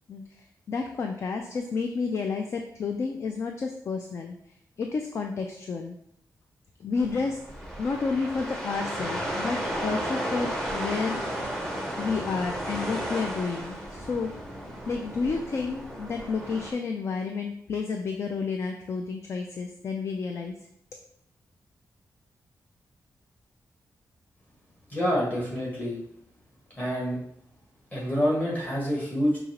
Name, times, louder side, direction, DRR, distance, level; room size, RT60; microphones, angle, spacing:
voice 1, 0.1-4.4 4.8-6.0 6.8-11.3 12.0-14.3 14.9-20.6, left 4 dB, 45° left, 4 dB, 0.3 m, -31 dB
sound 1, 7.0-16.7, equal, 10° left, 0.7 m, -33 dB
voice 2, 24.9-26.0 26.8-27.2 27.9-29.4, equal, 25° left, -5 dB, 1.5 m, -27 dB
5.3 x 2.8 x 2.9 m, 0.72 s
wide cardioid pair, 175°, 7 cm